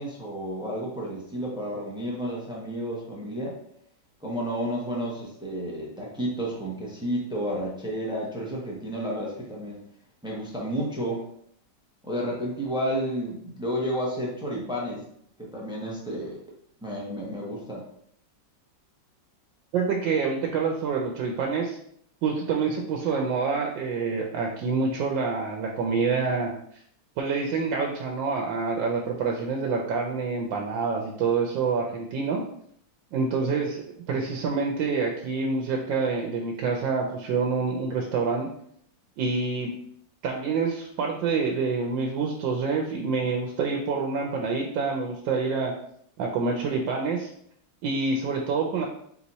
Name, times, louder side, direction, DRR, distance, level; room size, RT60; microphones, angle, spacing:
voice 1, 0.0-3.6 4.2-9.8 10.2-11.3 12.0-15.0 15.4-16.4 16.8-17.9, equal, 5° right, -3 dB, 0.5 m, -31 dB
voice 2, 19.7-21.8 22.2-26.5 27.2-32.4 33.1-38.5 39.2-39.7 40.2-45.7 46.2-47.3 47.8-48.9, right 4 dB, 90° right, 0 dB, 1.4 m, -27 dB
4.0 x 3.0 x 4.0 m, 0.67 s
omnidirectional pair, 2.0 m